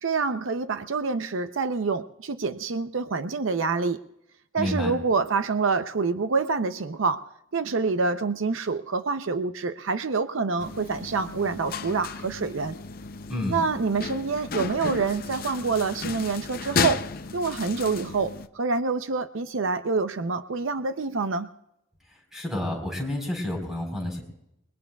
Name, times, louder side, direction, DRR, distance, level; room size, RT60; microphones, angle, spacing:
voice 1, 0.0-4.0 4.5-7.2 7.5-12.7 13.5-17.1 17.3-21.5, right 4 dB, 70° right, 10 dB, 0.6 m, -27 dB
voice 2, 4.6-5.0 13.3-13.7 22.1-24.2, left 1 dB, ahead, 1 dB, 4.1 m, -30 dB
sound 1, 10.6-18.5, left 5 dB, 45° left, 0.6 m, -33 dB
29.5 x 21.0 x 2.3 m, 0.83 s
head